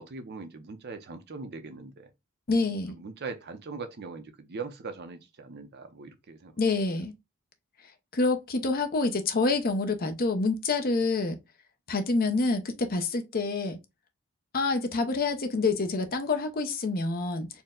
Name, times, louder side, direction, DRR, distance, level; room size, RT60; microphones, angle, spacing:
voice 1, 0.0-2.1 2.9-6.5 11.9-12.0, right 4 dB, 50° right, 0.6 m, -41 dB
voice 2, 2.5-2.9 6.6-7.1 8.1-11.4 11.9-13.8 14.5-17.5, left 3 dB, 40° left, 0.6 m, -27 dB
4.4 x 2.1 x 3.6 m
head